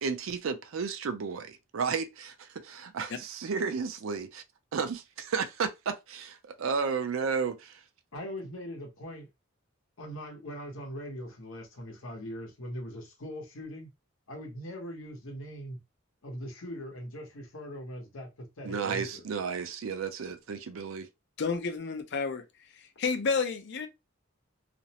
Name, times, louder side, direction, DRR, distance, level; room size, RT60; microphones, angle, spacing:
voice 1, 0.0-4.4 4.7-7.8 18.6-21.1, right 5 dB, 75° right, 0.4 m, -33 dB
voice 2, 8.1-9.3 10.0-13.9 14.3-15.8 16.2-19.2, equal, 75° left, 0.9 m, -41 dB
voice 3, 21.4-23.9, left 5 dB, 55° left, 0.5 m, -31 dB
2.5 x 2.0 x 2.8 m
head